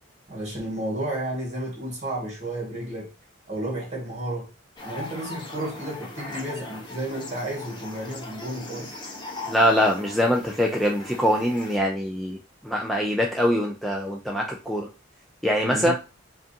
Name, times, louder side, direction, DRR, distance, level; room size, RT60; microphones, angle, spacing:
voice 1, 0.3-3.1 3.5-4.5 4.8-9.0 15.6-15.9, right 1 dB, 35° right, 1.6 m, -32 dB
sound 1, 4.8-11.8, left 2 dB, 25° left, 0.9 m, -39 dB
voice 2, 9.5-12.4 12.6-14.9 15.4-15.9, equal, ahead, 0.3 m, -23 dB
4.8 x 2.5 x 2.7 m
head